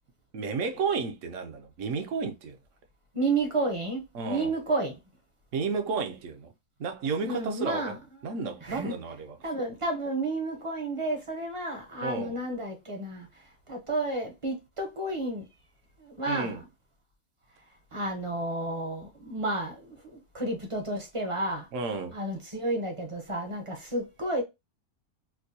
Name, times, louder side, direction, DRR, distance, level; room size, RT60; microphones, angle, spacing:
voice 1, 0.3-2.6 4.1-4.6 5.5-6.5 6.8-8.0 8.2-9.4 12.0-12.4 16.3-16.6 21.7-22.2, right 4 dB, 60° right, 0.9 m, -32 dB
voice 2, 3.1-4.9 7.2-8.0 8.6-9.0 9.4-15.5 16.0-16.6 17.9-21.7 22.1-24.4, right 2 dB, 30° right, 0.6 m, -31 dB
4.4 x 2.2 x 2.7 m
omnidirectional pair, 1.6 m